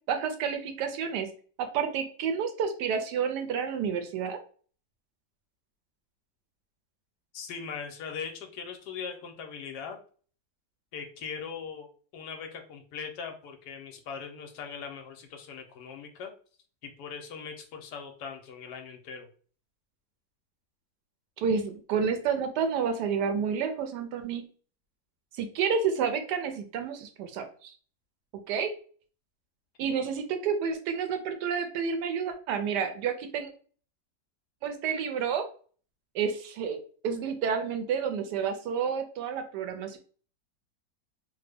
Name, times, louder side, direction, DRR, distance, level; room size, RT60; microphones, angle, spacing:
voice 1, 0.1-1.3 1.6-4.4 21.4-24.5 25.4-27.7 28.5-28.7 29.8-33.5 34.6-35.4 36.1-36.8 37.0-40.0, right 6 dB, 75° right, 7 dB, 1.1 m, -30 dB
voice 2, 7.3-10.0 10.9-11.9 12.1-16.3 16.8-19.3, left 6 dB, 75° left, 4 dB, 1.1 m, -40 dB
3.3 x 2.1 x 3.3 m, 0.42 s
omnidirectional pair, 1.9 m